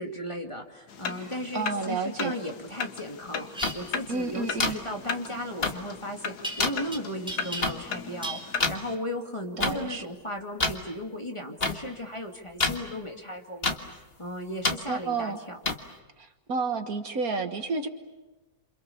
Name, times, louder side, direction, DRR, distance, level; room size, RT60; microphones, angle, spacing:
voice 1, 0.0-15.6, left 1 dB, 20° left, 2 dB, 2.4 m, -36 dB
sound 1, 0.9-9.0, left 6 dB, 90° left, 1.8 m, -37 dB
voice 2, 1.2-2.3 4.1-4.8 9.6-10.1 14.9-15.4 16.2-17.9, right 4 dB, 65° right, 7 dB, 2.0 m, -31 dB
sound 2, 3.5-3.7 6.4-7.0 7.3-7.9 8.2-8.5, right 1 dB, 5° right, 4.1 m, -35 dB
sound 3, 3.6-3.7 4.6-4.7 5.6-5.7 6.6-6.7 7.6-7.7 8.6-8.7 9.6-9.7 10.6-10.7 11.6-11.7 12.6-12.8 13.6-13.7 14.6-14.7 15.6-15.7, left 3 dB, 40° left, 2.0 m, -25 dB
28.5 x 28.0 x 7.1 m, 1.1 s
omnidirectional pair, 1.7 m